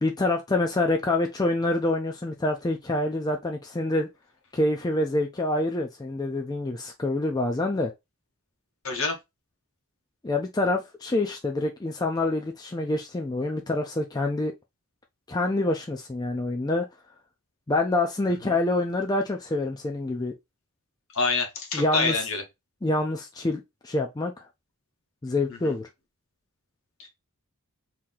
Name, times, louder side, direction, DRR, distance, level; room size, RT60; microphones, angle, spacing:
voice 1, 0.0-4.1 4.5-7.9 10.2-14.5 15.3-16.9 17.7-20.3 21.7-22.2 22.8-24.3 25.2-25.9, left 2 dB, 15° left, 0.4 m, -26 dB
voice 2, 8.8-9.2 21.1-22.4 25.5-25.7 27.0-27.1, left 4 dB, 65° left, 1.1 m, -27 dB
2.9 x 2.7 x 3.7 m
head